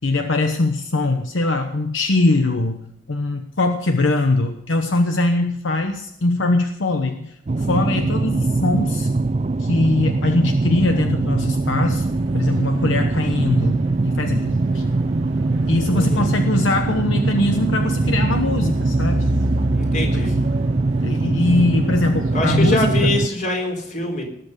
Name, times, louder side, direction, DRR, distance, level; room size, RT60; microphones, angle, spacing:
voice 1, 0.0-2.8 3.1-9.1 9.6-12.1 12.3-14.9 15.7-19.3 20.1-20.2 21.0-23.1, left 2 dB, 75° left, 6 dB, 1.0 m, -21 dB
sound 1, 7.5-23.3, right 3 dB, 35° right, 0.4 m, -22 dB
sound 2, 11.6-22.7, right 1 dB, 90° right, 1.3 m, -29 dB
voice 2, 15.9-16.3 19.7-20.4 22.3-24.2, left 1 dB, 40° left, 1 dB, 4.1 m, -24 dB
19.0 x 7.8 x 6.6 m, 0.78 s
head